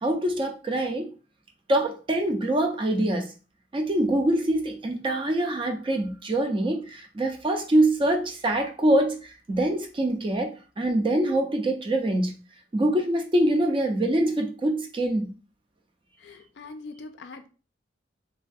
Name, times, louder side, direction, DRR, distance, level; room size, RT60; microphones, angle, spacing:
voice 1, 0.0-1.1 1.7-3.3 3.7-12.4 12.7-15.3, right 1 dB, 25° right, 0.4 m, -24 dB
voice 2, 16.2-17.5, left 3 dB, 60° left, 0.4 m, -42 dB
3.2 x 2.2 x 2.5 m
head